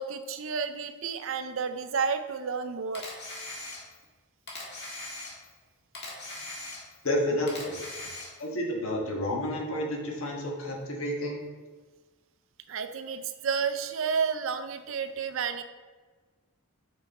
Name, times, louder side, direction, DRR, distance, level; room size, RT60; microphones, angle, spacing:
voice 1, 0.0-3.1 12.7-15.6, right 6 dB, 65° right, 10 dB, 0.5 m, -31 dB
Camera, 2.9-4.1 4.5-5.6 5.9-7.1 7.5-8.5, left 2 dB, 50° left, 1.8 m, -40 dB
voice 2, 7.0-7.7 8.4-11.4, left 1 dB, 70° left, -1 dB, 1.5 m, -30 dB
6.4 x 5.3 x 4.1 m, 1.4 s
head